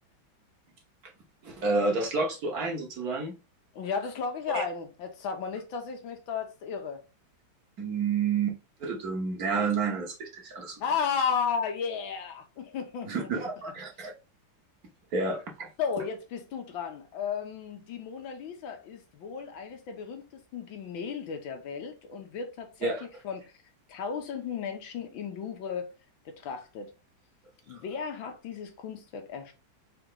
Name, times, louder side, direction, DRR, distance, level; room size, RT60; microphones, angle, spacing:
voice 1, 1.4-3.3 4.5-4.6 7.8-10.8 13.1-14.1 15.1-15.7 22.8-23.1, right 4 dB, 55° right, 1.4 m, -30 dB
voice 2, 3.7-7.0 10.8-13.3 15.8-22.9 23.2-23.4 23.9-25.9 26.2-26.9 27.7-29.5, left 6 dB, 75° left, 1.7 m, -34 dB
4.4 x 3.0 x 3.7 m
omnidirectional pair, 2.2 m